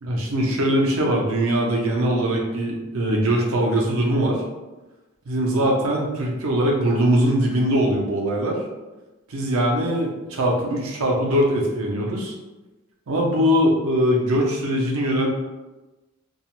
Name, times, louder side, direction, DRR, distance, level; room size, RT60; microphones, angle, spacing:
voice 1, 0.0-4.4 5.3-8.6 9.3-12.3 13.1-15.3, equal, 70° right, -1 dB, 0.5 m, -21 dB
2.3 x 2.1 x 2.9 m, 1.1 s
head